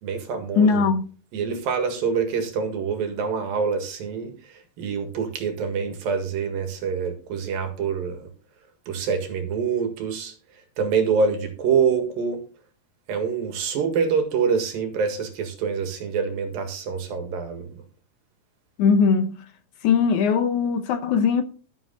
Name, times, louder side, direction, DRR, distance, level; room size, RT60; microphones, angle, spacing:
voice 1, 0.0-0.9 1.3-4.3 4.8-8.3 8.9-10.3 10.8-12.4 13.1-17.8, right 6 dB, 85° right, 3.5 m, -25 dB
voice 2, 0.6-1.0 18.8-19.4 19.8-21.4, left 5 dB, 70° left, 2.0 m, -20 dB
12.5 x 7.5 x 3.9 m
omnidirectional pair, 4.0 m